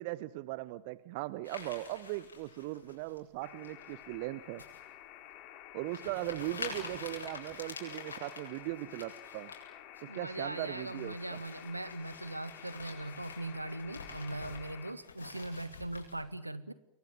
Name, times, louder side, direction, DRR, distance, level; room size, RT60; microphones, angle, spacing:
voice 1, 0.0-4.6 5.7-9.5 10.0-11.4, right 18 dB, 45° right, 18 dB, 1.0 m, -39 dB
sound 1, 1.4-3.2 3.6-4.0 4.6-4.8 5.3-5.4 5.9-9.6 10.0-10.2 10.6-16.2, left 4 dB, 75° left, 8.0 m, -47 dB
sound 2, 3.4-14.9, left 12 dB, 40° left, 3.8 m, -51 dB
voice 2, 10.1-16.7, right 2 dB, 85° right, 15 dB, 1.7 m, -40 dB
29.5 x 22.5 x 7.7 m, 0.77 s
figure-of-eight pair, 90°, 0 cm